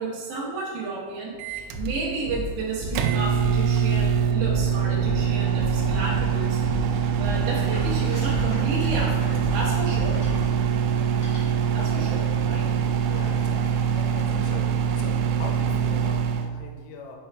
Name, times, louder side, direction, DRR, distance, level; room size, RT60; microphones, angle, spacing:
voice 1, 0.0-6.6 6.9-10.2 11.7-12.7, right 3 dB, 70° right, -4 dB, 3.2 m, -32 dB
Microwave oven, 1.4-16.5, right 7 dB, 90° right, 2.4 m, -24 dB
sound 1, 1.7-10.5, left 2 dB, 45° right, 1.7 m, -33 dB
sound 2, 7.7-10.5 11.1-11.4, equal, 45° left, 2.1 m, -44 dB
voice 2, 12.6-17.2, left 4 dB, 85° left, 1 dB, 3.0 m, -42 dB
6.9 x 5.4 x 3.4 m, 1.5 s
omnidirectional pair, 5.4 m